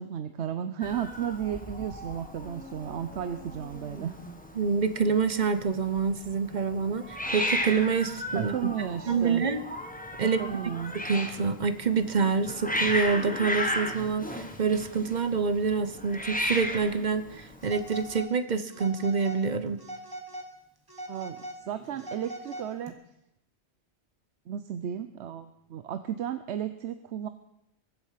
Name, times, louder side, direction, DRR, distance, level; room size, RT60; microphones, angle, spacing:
voice 1, 0.0-4.2 8.3-9.5 10.2-11.0 21.1-22.9 24.5-27.3, right 9 dB, 70° right, 11 dB, 0.9 m, -34 dB
Hiss, 0.8-18.2, left 1 dB, 5° left, 1.3 m, -35 dB
voice 2, 4.6-8.5 9.1-9.6 10.2-10.4 11.0-19.8, right 5 dB, 45° right, 11 dB, 0.9 m, -27 dB
Telephone, 17.6-18.3 18.7-19.4 19.8-20.5 20.9-22.9, right 1 dB, 20° right, 1.8 m, -41 dB
22.0 x 8.0 x 5.7 m, 0.82 s
omnidirectional pair, 1.2 m